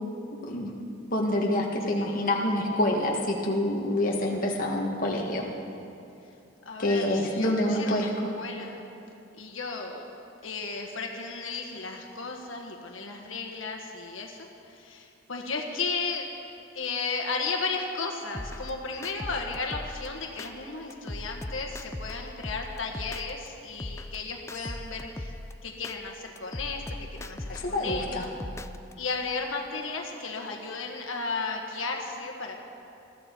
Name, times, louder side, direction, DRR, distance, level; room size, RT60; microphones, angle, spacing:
voice 1, 1.1-5.4 6.8-8.1 27.5-28.3, left 1 dB, 45° left, -1 dB, 1.6 m, -27 dB
voice 2, 6.6-8.9 9.3-10.0 10.4-16.3 16.7-25.3 25.6-28.3 29.0-32.6, left 4 dB, 85° left, 1 dB, 1.6 m, -34 dB
sound 1, 18.3-20.5 20.9-23.5 23.8-26.0 26.4-28.9, left 1 dB, 15° left, 0.4 m, -39 dB
20.5 x 14.0 x 4.5 m, 2.7 s
head